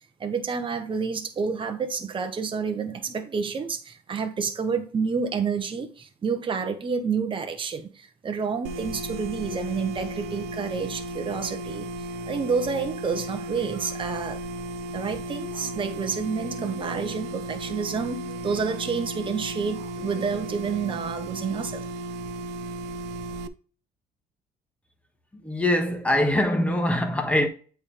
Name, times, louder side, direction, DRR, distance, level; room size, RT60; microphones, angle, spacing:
voice 1, 0.2-11.9 12.3-14.4 14.9-21.8, right 5 dB, 30° right, 1.1 m, -29 dB
sound 1, 8.6-23.5, right 2 dB, 80° right, 0.6 m, -35 dB
voice 2, 25.3-27.5, left 1 dB, 10° left, 1.5 m, -23 dB
8.1 x 4.5 x 3.4 m
cardioid pair, 110°, 17 cm